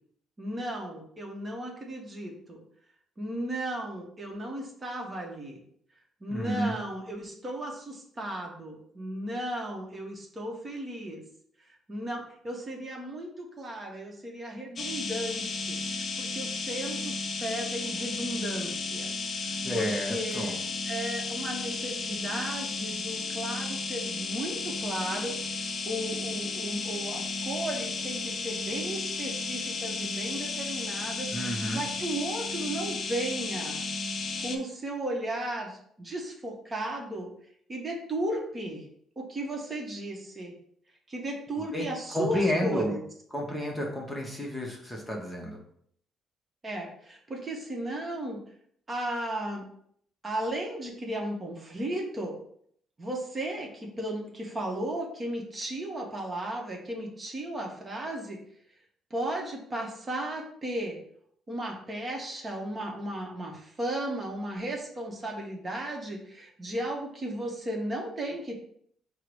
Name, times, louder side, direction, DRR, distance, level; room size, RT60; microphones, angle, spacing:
voice 1, 0.4-2.6 3.2-5.6 6.2-11.2 11.9-20.6 20.9-33.8 34.4-37.3 37.7-38.9 39.2-40.5 41.1-43.0 46.6-48.4 48.9-49.6 50.2-52.4 53.0-58.4 59.1-61.0 61.5-68.5, right 1 dB, 25° right, 0 dB, 0.9 m, -35 dB
voice 2, 6.3-6.8 19.6-20.6 31.3-31.9 41.7-41.9 42.1-42.9 43.3-45.6, equal, 10° left, -1 dB, 0.8 m, -31 dB
sound 1, 14.8-34.6, left 4 dB, 40° left, 0.5 m, -33 dB
4.6 x 2.0 x 4.6 m, 0.65 s
cardioid pair, 120°, 0 cm